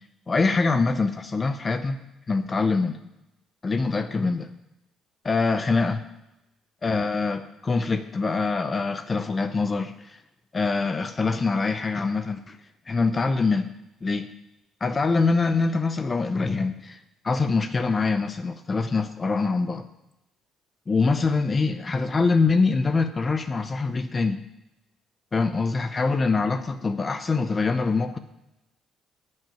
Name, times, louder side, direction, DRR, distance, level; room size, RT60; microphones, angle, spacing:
voice 1, 0.3-2.0 2.3-3.0 3.6-4.5 5.2-6.0 6.8-10.2 10.5-12.6 12.9-13.7 14.0-14.3 14.8-17.0 17.2-19.8 20.9-24.4 25.3-28.2, left 4 dB, 25° left, 10 dB, 0.7 m, -24 dB
10.5 x 7.6 x 8.9 m, 0.92 s
cardioid pair, 125°, 0 cm